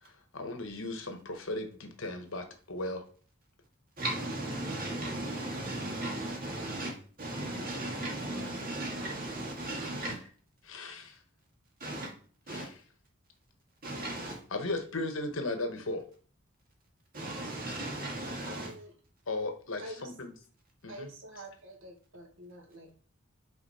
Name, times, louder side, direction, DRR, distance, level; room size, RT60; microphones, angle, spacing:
voice 1, 0.0-3.0 10.0-10.2 10.6-11.2 12.5-12.7 14.5-16.0 19.3-20.3 20.8-21.1, left 2 dB, 70° left, 1.1 m, -36 dB
voice 2, 4.0-10.2 11.8-12.1 12.5-12.7 13.8-14.4 17.1-18.7, right 1 dB, 40° right, 2.0 m, -36 dB
voice 3, 18.4-19.0 19.8-20.1 20.9-23.0, right 1 dB, 65° right, 1.5 m, -47 dB
5.8 x 4.0 x 4.3 m
head